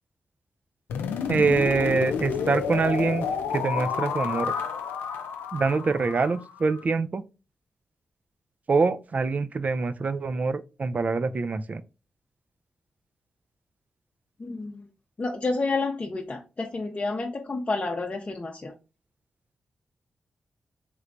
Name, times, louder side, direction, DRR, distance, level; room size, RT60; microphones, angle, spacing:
sound 1, 0.9-6.8, left 7 dB, 85° left, 0.4 m, -30 dB
voice 1, 1.3-3.3 3.5-4.5 5.5-7.2 8.7-11.8, right 4 dB, 45° right, 0.4 m, -25 dB
voice 2, 14.4-14.8 15.2-18.7, left 3 dB, 40° left, 0.6 m, -30 dB
3.2 x 3.1 x 2.5 m
supercardioid pair, 40°, 3 cm